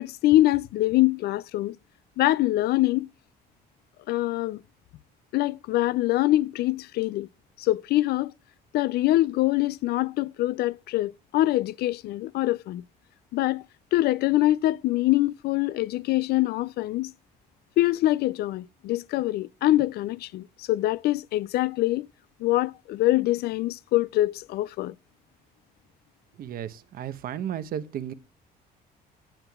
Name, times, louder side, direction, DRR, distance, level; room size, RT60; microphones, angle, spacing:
voice 1, 0.0-1.8 2.2-3.1 4.1-4.6 5.3-7.3 7.6-8.3 8.7-12.8 13.3-13.6 13.9-17.1 17.8-22.1 22.4-24.9, left 16 dB, 70° left, 0.4 m, -24 dB
voice 2, 26.4-28.1, right 9 dB, 60° right, 1.0 m, -34 dB
18.0 x 7.7 x 2.3 m
cardioid pair, 110°, 17 cm